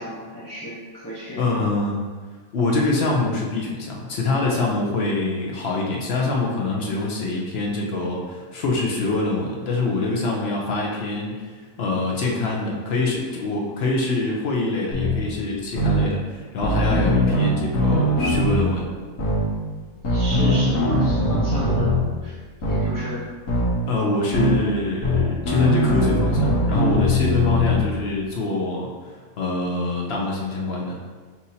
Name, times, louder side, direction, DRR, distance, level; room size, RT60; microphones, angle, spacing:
voice 1, 0.0-1.6 20.0-22.4 22.7-23.4, equal, 20° left, -10 dB, 0.6 m, -33 dB
voice 2, 1.4-2.0 2.5-18.9 23.9-29.1 29.4-31.0, left 2 dB, 55° left, -2 dB, 0.7 m, -25 dB
sound 1, 14.9-15.2 15.8-16.0 16.6-18.6 19.2-19.4 20.0-22.0 22.6-22.9 23.5-23.7 24.3-24.6 25.0-27.8, left 1 dB, 80° left, 1.5 m, -20 dB
6.0 x 2.8 x 2.7 m, 1.4 s
omnidirectional pair, 1.6 m